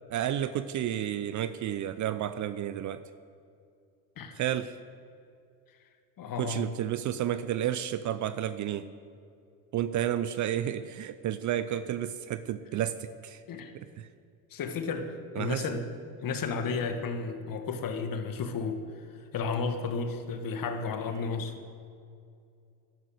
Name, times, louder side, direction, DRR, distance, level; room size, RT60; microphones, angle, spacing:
voice 1, 0.1-3.0 4.3-4.8 6.4-8.9 9.7-13.4 13.7-14.1 15.4-15.8, right 11 dB, 40° right, 13 dB, 0.5 m, -31 dB
voice 2, 6.2-6.7 13.5-13.7 14.5-15.8 16.2-18.8 19.3-21.5, left 4 dB, 45° left, 6 dB, 1.7 m, -33 dB
11.5 x 9.5 x 8.0 m, 2.4 s
hypercardioid pair, 85°, 48 cm